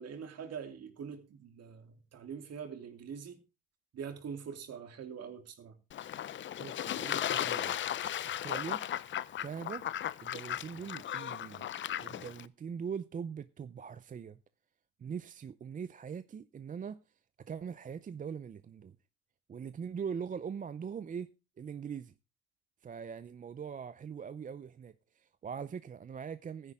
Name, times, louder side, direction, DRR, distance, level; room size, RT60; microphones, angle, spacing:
voice 1, 0.0-3.4 3.9-5.8, right 7 dB, 45° right, 2.9 m, -44 dB
Fowl / Bird / Water, 5.9-12.5, left 11 dB, 35° left, 0.5 m, -36 dB
voice 2, 6.6-7.8 8.3-8.8 9.4-9.9 10.2-11.7 12.0-14.4 15.0-17.0 17.4-19.0 19.5-21.3 21.6-22.1 22.8-26.7, right 7 dB, 25° right, 0.5 m, -42 dB
15.0 x 10.0 x 3.6 m
cardioid pair, 115°, 34 cm